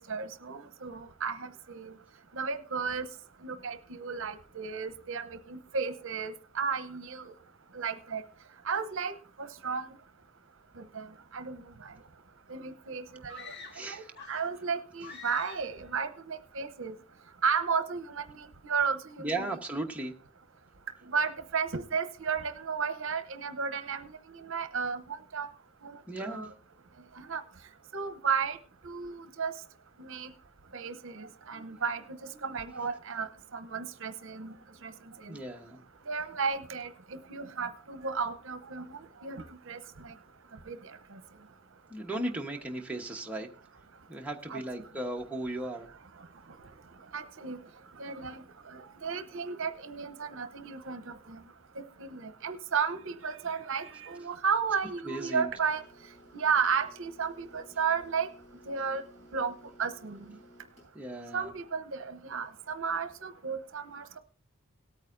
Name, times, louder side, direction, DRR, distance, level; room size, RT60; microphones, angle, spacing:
voice 1, 0.1-2.0 2.3-3.1 3.4-7.3 7.7-8.2 8.6-9.1 9.4-9.9 10.8-11.9 12.5-16.9 17.4-19.6 21.1-25.5 25.8-26.5 27.2-27.4 27.9-28.6 28.8-29.5 30.0-30.3 30.7-32.0 32.4-34.5 34.8-34.9 35.2-35.4 36.1-40.1 40.7-40.8 41.1-41.2 44.5-44.6 47.1-47.6 48.0-51.4 51.8-55.8 56.3-58.3 58.7-59.0 59.3-59.5 59.8-60.2 61.3-64.2, right 6 dB, 65° right, 10 dB, 0.8 m, -34 dB
sound 1, 13.3-14.6 15.0-15.8, left 5 dB, 55° left, 1.5 m, -46 dB
voice 2, 13.7-14.1 19.2-20.1 26.1-26.5 35.3-35.8 41.9-43.5 44.1-45.9 55.0-55.5 60.9-61.5, right 2 dB, 5° right, 0 dB, 1.1 m, -36 dB
sound 2, 55.7-60.9, left 1 dB, 30° left, 7.2 m, -56 dB
18.0 x 8.9 x 2.6 m, 0.42 s
head